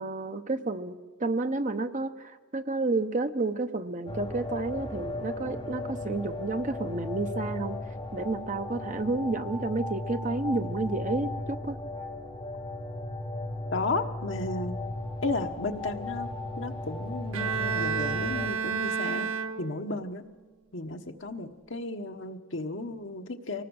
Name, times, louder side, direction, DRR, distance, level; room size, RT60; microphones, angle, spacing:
voice 1, 0.0-7.8 8.1-11.8, right 3 dB, 40° right, 9 dB, 0.8 m, -31 dB
sound 1, 4.1-18.5, left 2 dB, 25° left, 2.9 m, -36 dB
voice 2, 13.7-14.7 15.2-16.3 16.6-19.3 19.6-20.2 20.7-23.6, left 2 dB, 60° left, 6 dB, 1.3 m, -34 dB
Bowed string instrument, 17.3-20.0, right 6 dB, 90° right, 1.0 m, -30 dB
24.5 x 19.0 x 6.5 m, 1.3 s
head